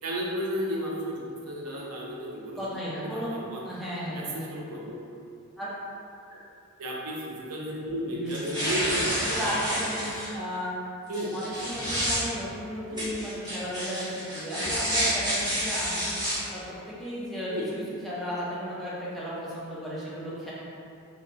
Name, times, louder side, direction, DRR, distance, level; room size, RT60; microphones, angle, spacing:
voice 1, 0.0-3.8 4.1-5.0 6.3-6.4 6.8-9.1 11.1-11.4 12.9-13.2 17.5-17.7, equal, 90° right, -3 dB, 0.6 m, -34 dB
voice 2, 2.5-3.3 3.6-4.5 5.6-5.7 8.1-8.5 9.2-10.7 11.3-20.5, equal, ahead, -9 dB, 0.6 m, -34 dB
sound 1, 8.3-10.3 11.1-12.2 13.0-16.4, equal, 20° right, 1.0 m, -29 dB
2.7 x 2.3 x 3.9 m, 2.5 s
head